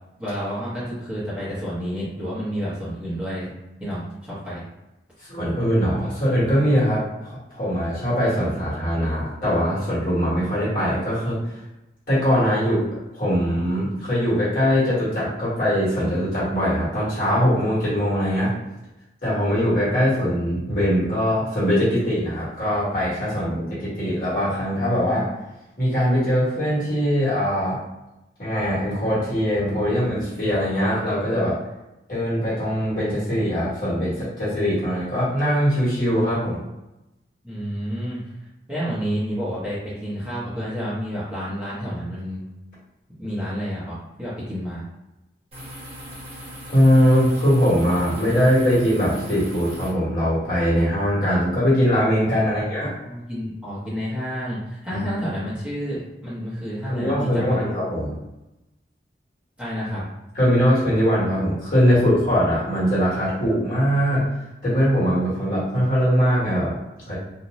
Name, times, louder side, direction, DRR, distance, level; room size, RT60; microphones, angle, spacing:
voice 1, 0.2-3.5 3.8-4.6 23.4-23.5 37.4-38.2 38.7-42.4 43.2-44.8 52.4-52.6 53.0-57.7 59.6-60.0, equal, 5° right, -11 dB, 0.8 m, -30 dB
voice 2, 5.3-11.4 12.1-18.5 19.2-25.3 25.8-27.8 28.4-31.6 32.1-36.6 46.7-52.9 54.9-55.0 56.9-58.1 60.3-64.2 64.6-66.8 67.0-67.1, equal, 50° left, -10 dB, 1.3 m, -21 dB
sound 1, 45.5-49.9, equal, 35° right, 1.1 m, -39 dB
2.6 x 2.2 x 3.0 m, 0.96 s
head